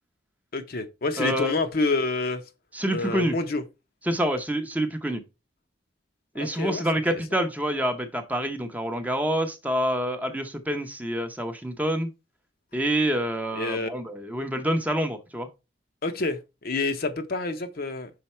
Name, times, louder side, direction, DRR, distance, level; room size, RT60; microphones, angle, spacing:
voice 1, 0.5-2.4 2.9-3.6 6.3-7.2 13.5-13.9 16.0-18.1, left 3 dB, 50° left, 0.7 m, -28 dB
voice 2, 1.2-1.5 2.7-3.3 4.0-5.2 6.3-12.1 12.7-15.5, right 1 dB, 10° right, 0.7 m, -27 dB
5.7 x 4.0 x 4.3 m
head